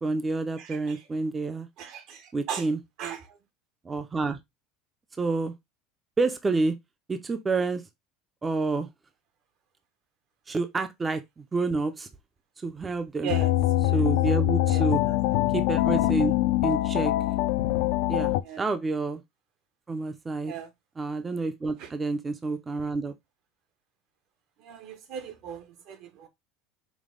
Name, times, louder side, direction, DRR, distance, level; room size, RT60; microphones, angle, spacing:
voice 1, 0.0-1.7 2.3-2.8 3.8-4.4 5.2-5.5 6.2-6.8 7.1-7.8 8.4-8.9 10.5-12.1 12.6-13.3 13.9-15.0 15.5-16.3 16.6-17.1 18.1-19.2 19.9-20.5 21.0-23.1, right 3 dB, 15° right, 0.4 m, -28 dB
voice 2, 0.6-1.1 1.8-2.7 3.0-3.4 13.2-13.5 13.8-14.0 14.7-15.2 18.4-18.7 20.4-20.7 21.8-21.9 24.6-26.3, right 7 dB, 55° right, 0.7 m, -38 dB
sound 1, 13.3-18.4, left 15 dB, 70° left, 0.3 m, -24 dB
5.1 x 2.0 x 3.7 m
cardioid pair, 155°, 0 cm